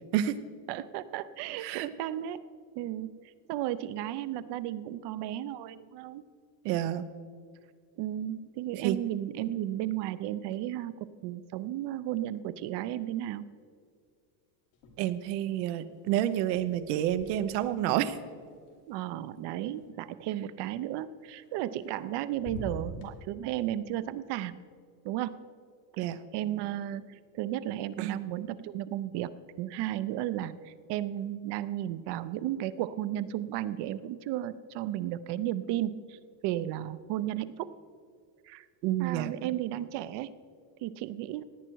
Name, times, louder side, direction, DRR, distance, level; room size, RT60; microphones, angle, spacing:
voice 1, 0.7-2.4 2.8-3.1 3.5-6.2 8.0-10.9 11.2-13.4 18.9-24.6 25.0-25.4 26.0-26.1 26.3-37.7 38.4-38.7 39.0-40.3 40.8-41.4, right 13 dB, 55° right, 15 dB, 0.7 m, -34 dB
voice 2, 1.6-1.9 6.6-7.0 8.7-9.0 15.0-18.2 26.0-26.2 28.0-28.1 38.8-39.3, right 12 dB, 85° right, 12 dB, 0.9 m, -29 dB
sound 1, 14.7-15.4 15.7-19.8 21.4-22.1 22.3-23.1, equal, 75° left, 2.6 m, -46 dB
17.5 x 9.0 x 4.6 m, 2.1 s
supercardioid pair, 125°, 48 cm